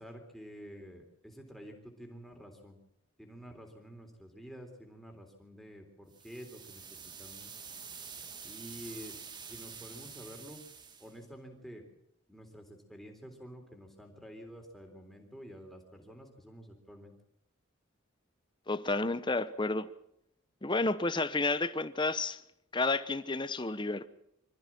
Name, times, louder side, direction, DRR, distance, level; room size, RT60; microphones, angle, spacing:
voice 1, 0.0-2.8 3.2-7.5 8.4-9.2 9.4-10.6 11.0-11.8 12.3-17.1, equal, ahead, 3.5 m, -49 dB
sound 1, 6.1-11.2, right 6 dB, 20° right, 1.5 m, -47 dB
voice 2, 18.7-19.9 20.6-22.4 22.7-24.1, left 3 dB, 20° left, 0.8 m, -31 dB
25.0 x 14.5 x 7.6 m
head